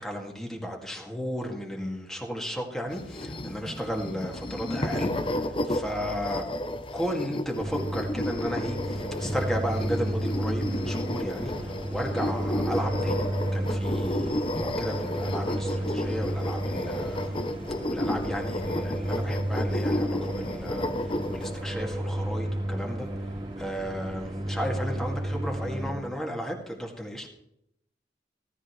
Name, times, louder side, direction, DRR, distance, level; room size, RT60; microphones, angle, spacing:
voice 1, 0.0-6.5 6.9-17.4 17.9-20.9 21.3-23.1 23.6-27.3, equal, ahead, -1 dB, 2.2 m, -34 dB
sound 1, 2.9-21.6, left 1 dB, 30° left, 0.8 m, -32 dB
sound 2, 7.5-25.9, right 1 dB, 30° right, 2.7 m, -32 dB
17.0 x 14.0 x 3.2 m, 0.77 s
head